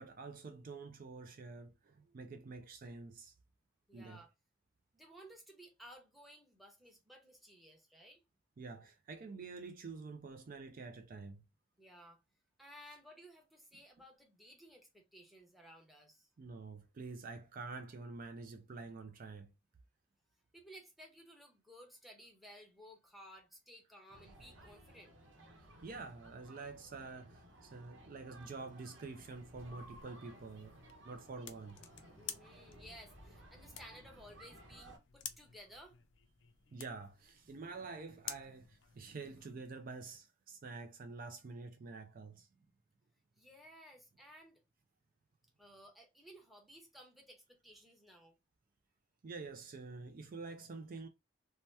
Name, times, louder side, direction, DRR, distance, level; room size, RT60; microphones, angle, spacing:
voice 1, 0.0-3.3 3.9-4.2 8.6-11.4 16.4-19.5 25.8-31.8 33.6-33.8 36.7-42.5 49.2-51.1, right 4 dB, 50° right, 0.4 m, -48 dB
voice 2, 3.9-4.3 4.9-8.2 11.8-12.2 12.6-16.3 20.5-25.2 32.2-36.0 43.4-44.6 45.6-48.4, equal, ahead, 0.8 m, -57 dB
sound 1, 24.1-35.0, right 1 dB, 85° right, 0.9 m, -58 dB
sound 2, 29.2-39.5, left 9 dB, 75° left, 0.4 m, -53 dB
2.8 x 2.2 x 3.2 m
head